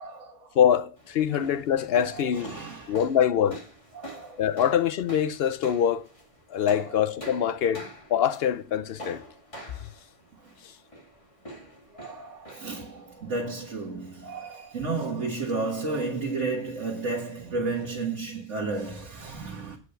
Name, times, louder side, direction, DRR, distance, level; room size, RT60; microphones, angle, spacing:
voice 1, 0.0-0.6 2.1-3.0 3.9-4.4 6.7-7.0 11.9-19.8, right 3 dB, 85° right, 1.9 m, -32 dB
voice 2, 0.6-2.6 2.9-3.6 4.4-6.0 6.5-9.2, left 9 dB, 65° left, 0.8 m, -24 dB
sound 1, 1.0-15.2, right 1 dB, 25° left, 2.2 m, -46 dB
8.3 x 5.0 x 6.6 m
omnidirectional pair, 1.2 m